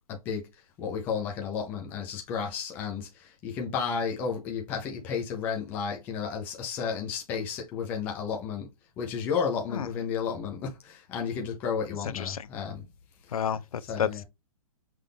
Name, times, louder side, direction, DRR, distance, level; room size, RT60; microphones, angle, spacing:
voice 1, 0.1-0.5 0.8-8.7 9.0-12.9 13.9-14.2, left 6 dB, 10° left, 0.6 m, -32 dB
voice 2, 12.1-12.5 13.3-14.2, left 8 dB, 75° left, 0.6 m, -30 dB
5.9 x 2.6 x 3.4 m
hypercardioid pair, 175°, 19 cm